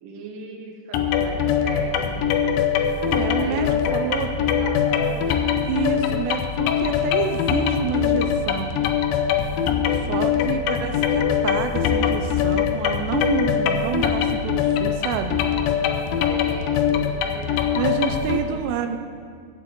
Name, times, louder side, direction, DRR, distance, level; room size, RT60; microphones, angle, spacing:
voice 1, 0.0-2.5 3.3-5.4 9.5-10.6 16.3-19.0, right 3 dB, 65° right, 1 dB, 2.5 m, -38 dB
sound 1, 0.9-18.4, left 8 dB, 80° left, 2.1 m, -22 dB
voice 2, 3.1-4.3 5.6-8.8 10.1-15.5 17.8-19.0, right 8 dB, 85° right, 7 dB, 2.7 m, -28 dB
14.0 x 9.0 x 3.7 m, 2.1 s
omnidirectional pair, 4.8 m